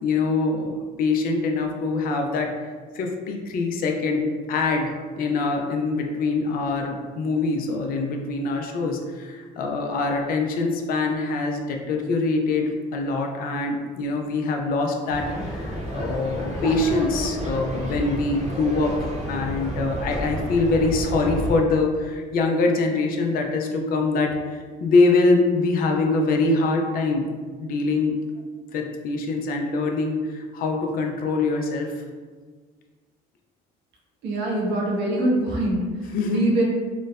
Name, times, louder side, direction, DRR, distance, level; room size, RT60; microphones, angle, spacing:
voice 1, 0.0-2.5 2.9-27.3 27.6-28.2 28.7-31.9 36.1-36.4, left 3 dB, 60° left, 3 dB, 0.4 m, -24 dB
sound 1, 15.1-21.6, equal, 40° right, 0.7 m, -31 dB
voice 2, 34.2-36.6, right 1 dB, 85° right, -3 dB, 0.7 m, -24 dB
3.0 x 2.0 x 2.3 m, 1.5 s
cardioid pair, 110°, 17 cm